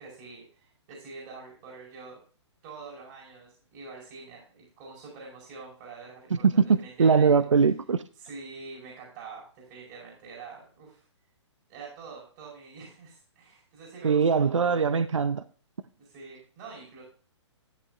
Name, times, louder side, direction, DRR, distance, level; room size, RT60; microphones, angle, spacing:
voice 1, 0.0-2.2 2.6-7.3 8.2-11.0 11.7-14.8 16.0-17.0, right 4 dB, 40° right, 4.7 m, -45 dB
voice 2, 6.3-8.0 14.0-15.4, right 5 dB, 80° right, 0.6 m, -22 dB
13.0 x 11.0 x 2.5 m
figure-of-eight pair, 125°, 15 cm